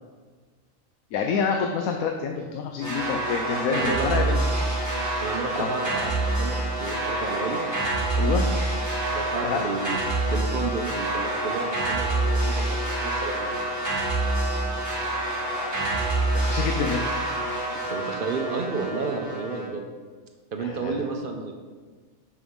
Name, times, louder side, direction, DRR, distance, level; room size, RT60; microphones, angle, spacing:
voice 1, 1.1-4.4 5.6-5.7 8.1-8.5 9.4-9.6 15.9-17.0 20.6-21.0, left 6 dB, 90° left, 3 dB, 1.1 m, -28 dB
sound 1, 2.8-19.7, right 2 dB, 15° right, 1.6 m, -27 dB
voice 2, 3.7-4.4 5.2-7.6 9.1-10.0 10.2-13.6 17.8-19.8 20.5-21.5, right 4 dB, 50° right, 3 dB, 0.7 m, -31 dB
6.9 x 6.1 x 3.6 m, 1.5 s
omnidirectional pair, 1.4 m